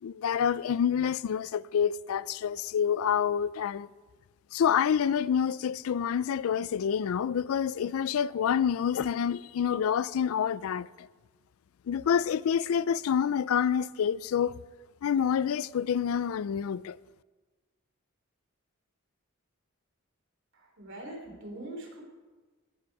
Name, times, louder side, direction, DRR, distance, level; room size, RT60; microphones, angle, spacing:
voice 1, 0.0-3.9 4.5-11.1 11.9-14.5 15.0-17.0, left 8 dB, 80° left, 0.3 m, -27 dB
voice 2, 20.5-22.0, right 1 dB, 60° right, 3.4 m, -42 dB
18.0 x 7.7 x 4.7 m
head